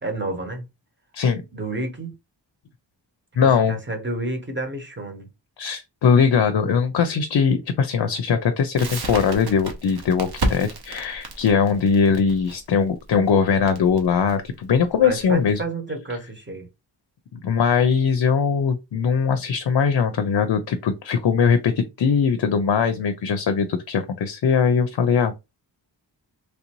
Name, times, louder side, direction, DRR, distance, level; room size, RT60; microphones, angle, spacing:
voice 1, 0.0-0.7 1.5-2.1 3.4-5.3 15.0-16.7, right 2 dB, 25° right, 1.0 m, -30 dB
voice 2, 3.4-3.8 5.6-15.6 17.3-25.3, left 6 dB, 60° left, 0.5 m, -20 dB
Crackle, 8.8-15.6, right 1 dB, 55° right, 0.8 m, -31 dB
3.2 x 2.6 x 2.9 m
wide cardioid pair, 90°, 45 cm